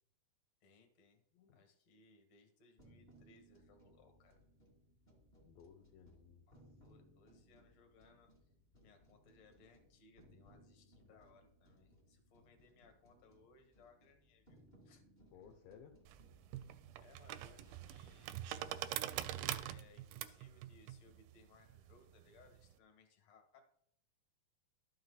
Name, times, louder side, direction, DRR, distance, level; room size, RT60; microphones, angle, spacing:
voice 1, 0.6-1.2 1.5-4.4 6.5-8.3 8.8-15.0 15.3-15.5 17.0-18.6 19.4-23.6, left 4 dB, 55° left, 4 dB, 2.5 m, -66 dB
voice 2, 1.3-1.7 5.4-6.4 15.3-16.0, left 7 dB, 75° left, 3 dB, 2.4 m, -59 dB
sound 1, 2.8-18.6, equal, 30° left, 0.8 m, -67 dB
sound 2, 16.1-22.7, right 13 dB, 85° right, 2.4 m, -44 dB
12.5 x 6.4 x 4.0 m, 0.68 s
omnidirectional pair, 4.3 m